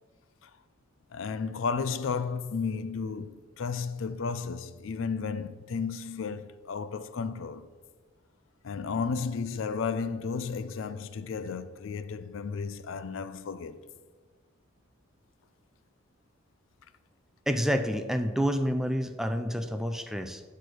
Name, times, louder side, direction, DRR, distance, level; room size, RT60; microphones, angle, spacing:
voice 1, 1.1-7.7 8.6-13.9, left 5 dB, 70° left, 0.4 m, -33 dB
voice 2, 17.5-20.4, equal, ahead, 0.4 m, -28 dB
8.3 x 4.6 x 6.2 m
head